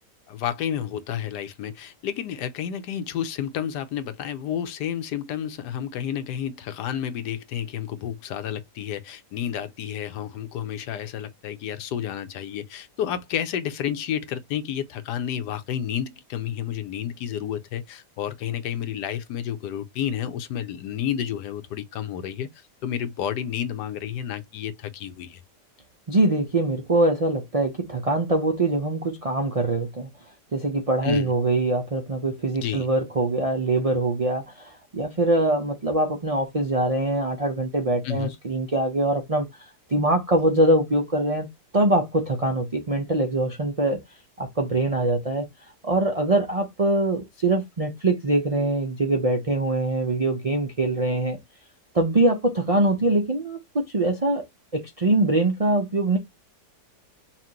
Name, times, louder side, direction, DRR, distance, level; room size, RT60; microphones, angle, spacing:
voice 1, 0.3-22.5 22.8-25.4 31.0-31.3 32.6-32.9 38.0-38.3, left 9 dB, 80° left, 1.3 m, -30 dB
voice 2, 26.1-30.1 30.5-39.5 39.9-41.5 41.7-44.0 44.4-45.5 45.8-51.4 51.9-54.4 54.7-56.2, right 2 dB, 60° right, 0.3 m, -23 dB
5.8 x 2.6 x 2.8 m
omnidirectional pair, 1.8 m